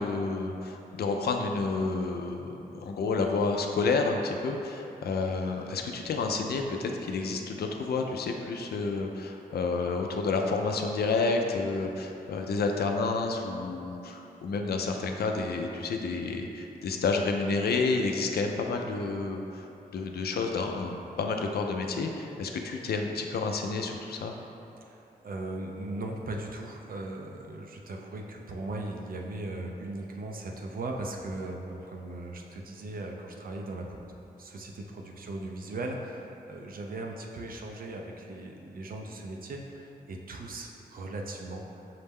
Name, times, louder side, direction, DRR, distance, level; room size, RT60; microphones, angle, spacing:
voice 1, 0.0-24.3, left 3 dB, 75° left, 3 dB, 0.4 m, -30 dB
voice 2, 25.2-34.0 34.4-41.6, right 2 dB, 60° right, 1 dB, 0.5 m, -38 dB
5.5 x 2.1 x 3.5 m, 2.9 s
cardioid pair, 45°, 17 cm